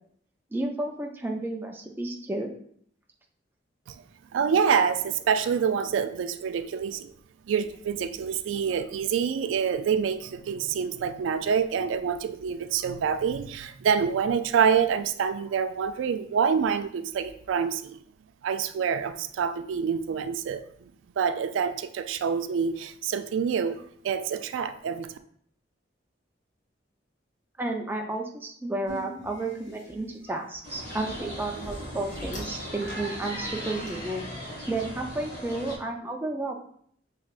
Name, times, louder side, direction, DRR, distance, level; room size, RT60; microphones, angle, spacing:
voice 1, 0.5-2.5 27.6-36.6, right 2 dB, 10° right, 1 dB, 0.4 m, -32 dB
voice 2, 4.3-7.1 7.5-18.0 18.4-20.9 21.2-25.1, right 7 dB, 90° right, 11 dB, 0.3 m, -27 dB
sound 1, 28.8-33.9, left 1 dB, 75° left, 1.4 m, -43 dB
sound 2, 30.6-35.8, equal, 45° left, 1.8 m, -38 dB
6.0 x 3.2 x 2.4 m, 0.63 s
head